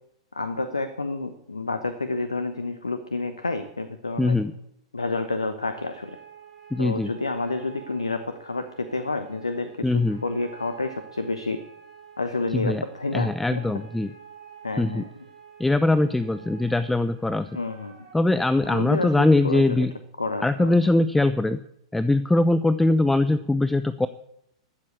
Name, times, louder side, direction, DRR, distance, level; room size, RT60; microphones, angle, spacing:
voice 1, 0.3-4.4 4.9-6.2 6.8-11.6 12.2-13.6 14.6-15.1 17.5-18.0 18.6-19.9 20.2-20.8, left 3 dB, 85° left, 11 dB, 0.9 m, -29 dB
voice 2, 4.2-4.5 6.7-7.1 9.8-10.2 12.5-12.8 13.1-14.1 14.8-15.0 15.6-17.5 18.1-19.9 20.4-21.6 21.9-24.1, left 2 dB, 5° left, 14 dB, 0.5 m, -21 dB
sound 1, 5.6-18.2, right 7 dB, 60° right, 4.4 m, -48 dB
13.0 x 7.5 x 8.3 m, 0.77 s
figure-of-eight pair, 100°, 3 cm